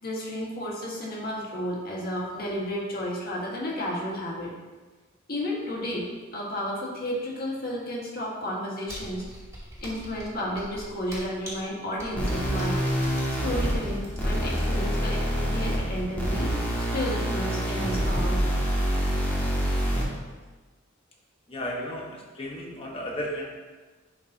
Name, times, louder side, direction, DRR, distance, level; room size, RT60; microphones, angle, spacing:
voice 1, 0.0-4.5 5.3-6.1 6.3-9.2 9.8-12.8 13.4-16.5 16.9-18.4, equal, 50° left, -4 dB, 1.7 m, -32 dB
Computer keyboard, 8.9-14.5, equal, 15° right, 2.3 m, -42 dB
sound 1, 12.2-20.2, equal, 10° left, 1.5 m, -26 dB
voice 2, 21.5-23.5, equal, 30° left, -2 dB, 1.3 m, -34 dB
10.5 x 5.4 x 2.9 m, 1.3 s
head